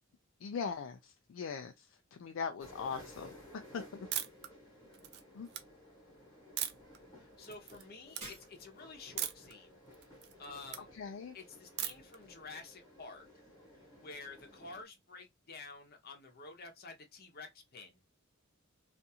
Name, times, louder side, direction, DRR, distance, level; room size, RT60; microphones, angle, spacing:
voice 1, 0.4-3.3 3.7-4.1 5.3-5.5 10.9-11.3, left 6 dB, 65° left, 0.3 m, -40 dB
sound 1, 2.6-14.8, left 1 dB, 20° left, 1.1 m, -56 dB
sound 2, 4.1-4.5 4.9-5.6 6.6-7.0 7.4-7.8 8.1-8.2 9.2-9.5 9.9-10.8 11.8-12.2, right 10 dB, 55° right, 0.4 m, -38 dB
voice 2, 7.2-9.7 10.4-10.9 11.3-13.3 14.0-18.0, left 3 dB, 50° left, 0.8 m, -50 dB
Shatter, 8.2-9.0, right 2 dB, 30° right, 1.0 m, -50 dB
2.5 x 2.3 x 2.7 m
head